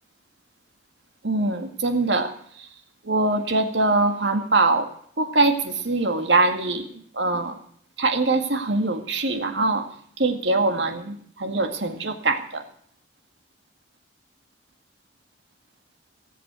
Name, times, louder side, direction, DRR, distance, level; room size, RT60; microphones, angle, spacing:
voice 1, 1.2-2.3 3.0-4.9 5.2-6.9 7.1-7.6 8.0-9.9 10.2-12.6, right 2 dB, 85° right, 6 dB, 2.0 m, -23 dB
17.5 x 7.7 x 8.2 m, 0.62 s
head